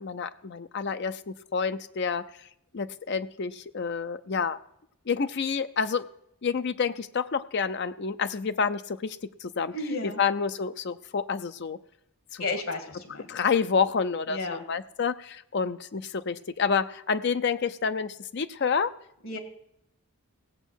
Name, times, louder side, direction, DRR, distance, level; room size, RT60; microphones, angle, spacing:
voice 1, 0.0-2.3 2.7-4.6 5.1-6.1 6.4-9.7 10.0-11.8 12.3-12.4 13.3-18.9, left 5 dB, 50° left, 12 dB, 0.5 m, -28 dB
voice 2, 9.7-10.2 12.4-13.3 14.3-14.6 19.2-19.4, left 2 dB, 65° left, 7 dB, 1.9 m, -32 dB
17.0 x 8.1 x 6.3 m, 0.77 s
head